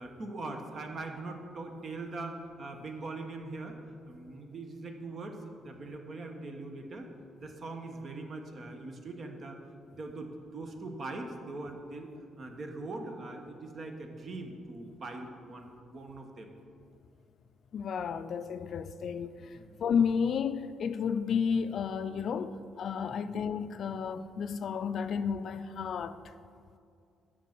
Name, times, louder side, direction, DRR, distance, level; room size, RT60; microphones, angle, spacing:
voice 1, 0.0-3.8 4.1-7.1 7.4-9.6 10.0-12.1 12.4-16.5 19.6-19.8 23.1-23.3, right 2 dB, 45° right, 1.1 m, -41 dB
voice 2, 17.7-26.2, left 6 dB, 60° left, 0.4 m, -32 dB
8.2 x 6.2 x 6.0 m
cardioid pair, 90°, 0 cm